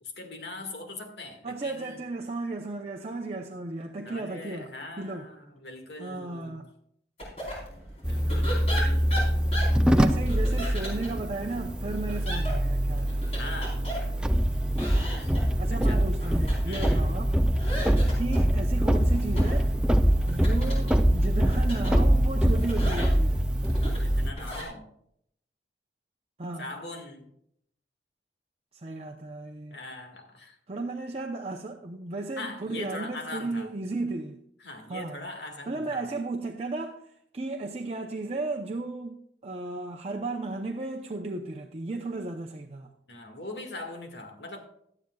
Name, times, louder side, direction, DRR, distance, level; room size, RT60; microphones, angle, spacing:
voice 1, 0.0-2.0 4.0-6.7 8.1-9.1 13.4-13.8 15.2-15.3 15.7-16.0 16.7-17.1 24.0-24.9 26.6-27.3 29.7-30.6 32.4-33.7 34.6-36.1 43.1-44.6, left 2 dB, 70° left, 1.9 m, -41 dB
voice 2, 1.4-4.7 5.0-5.3 6.0-6.7 9.8-13.2 15.6-17.3 18.2-19.7 20.3-23.5 26.4-26.7 28.7-29.8 30.7-34.4 34.9-35.3 35.7-39.2 39.4-42.9, right 2 dB, 35° right, 0.7 m, -34 dB
sound 1, 7.2-24.6, equal, 35° left, 4.1 m, -39 dB
sound 2, 8.0-24.3, equal, 5° right, 0.5 m, -24 dB
17.0 x 12.0 x 2.4 m
head